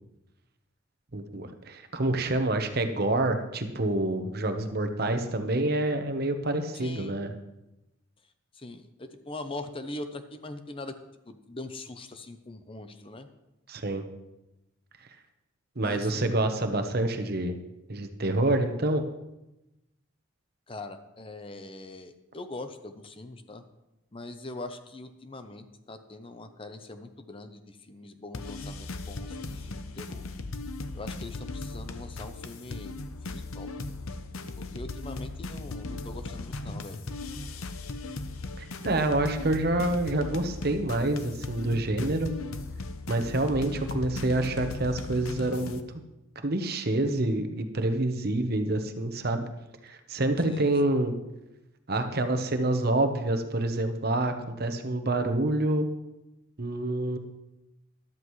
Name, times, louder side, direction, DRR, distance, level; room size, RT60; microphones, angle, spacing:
voice 1, 1.1-7.3 13.7-14.0 15.8-17.6 17.9-19.1 38.6-42.3 43.1-45.8 46.4-49.5 49.8-51.1 51.9-55.9 56.6-57.2, right 2 dB, 50° right, 7 dB, 1.0 m, -27 dB
voice 2, 6.7-7.2 8.5-10.9 11.3-13.3 15.8-16.3 20.7-23.6 24.1-30.2 30.9-32.9 33.3-33.7 34.6-37.0 50.4-51.0, left 2 dB, 25° left, 8 dB, 0.7 m, -42 dB
sound 1, 28.3-45.8, left 2 dB, 90° left, 0.8 m, -37 dB
13.5 x 12.0 x 3.2 m, 0.96 s
head